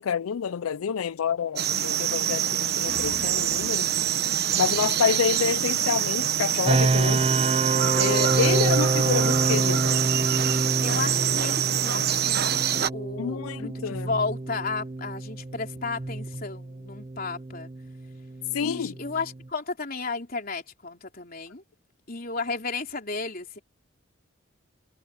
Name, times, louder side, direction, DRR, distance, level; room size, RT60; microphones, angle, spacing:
voice 1, 0.0-3.9 4.6-7.3 8.0-10.0 13.2-14.1 18.5-18.9, left 7 dB, 90° left, 0.4 m, -28 dB
sound 1, 1.6-12.9, right 10 dB, 50° right, 1.2 m, -25 dB
sound 2, 2.8-6.0, equal, 5° left, 2.2 m, -47 dB
sound 3, 6.6-19.5, right 2 dB, 25° right, 0.5 m, -28 dB
voice 2, 10.7-17.7 18.6-21.6 22.1-23.6, left 4 dB, 45° left, 3.9 m, -33 dB
head